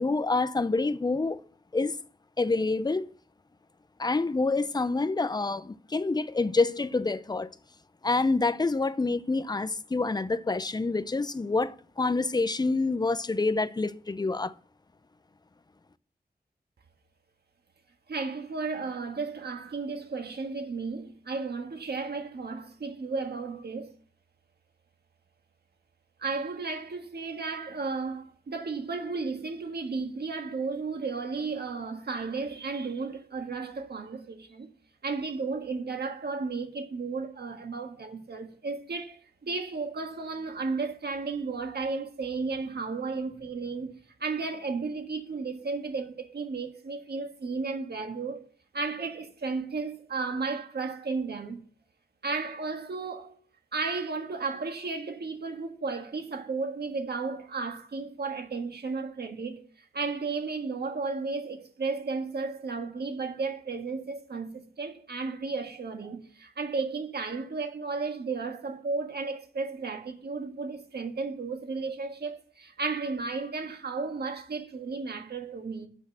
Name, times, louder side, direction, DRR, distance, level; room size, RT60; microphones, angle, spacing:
voice 1, 0.0-1.4 1.7-1.9 2.4-3.1 4.0-7.5 8.0-14.5, left 3 dB, 25° left, 0.6 m, -27 dB
voice 2, 18.1-23.9 26.2-34.7 35.0-43.9 44.2-48.4 48.7-51.6 52.2-53.4 53.7-59.6 59.9-75.9, right 4 dB, 75° right, 1.6 m, -34 dB
8.0 x 6.3 x 7.4 m
wide cardioid pair, 85°, 17 cm